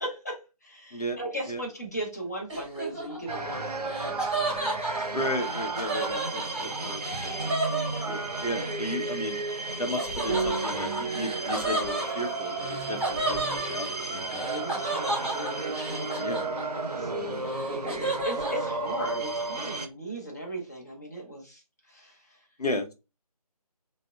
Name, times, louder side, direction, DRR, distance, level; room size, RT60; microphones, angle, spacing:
voice 1, 0.0-5.1 6.6-6.8 8.0-8.3 14.3-17.1 17.4-21.6 21.9-22.4, right 1 dB, 25° left, -2 dB, 0.7 m, -38 dB
Laughter, 2.5-8.5 10.0-16.9 17.3-18.7, right 2 dB, 15° right, 1.0 m, -33 dB
sound 1, 3.3-19.9, right 2 dB, 80° right, 0.5 m, -33 dB
voice 2, 5.1-9.4 9.8-14.2 16.2-16.5 17.2-17.5 22.6-22.9, left 1 dB, 75° left, 5 dB, 0.7 m, -34 dB
Piano, 10.3-19.6, right 5 dB, 35° right, 0.6 m, -39 dB
3.3 x 2.1 x 2.3 m, 0.28 s
figure-of-eight pair, 160°, 20 cm